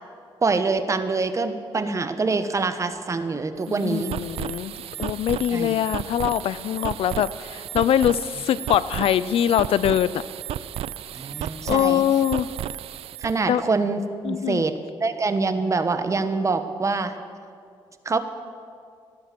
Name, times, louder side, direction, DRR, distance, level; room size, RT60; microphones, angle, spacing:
voice 1, 0.4-4.1 5.5-5.7 11.1-12.0 13.2-14.0 14.3-14.8 15.0-17.1 18.0-18.2, right 3 dB, 30° right, 9 dB, 1.2 m, -25 dB
sound 1, 3.6-13.4, right 11 dB, 80° right, 0.4 m, -33 dB
voice 2, 3.7-4.7 5.0-10.2 11.6-12.5 13.5-13.6 14.2-14.6, left 10 dB, 75° left, 17 dB, 0.5 m, -23 dB
15.5 x 11.0 x 7.7 m, 2.3 s
cardioid pair, 95°, 10 cm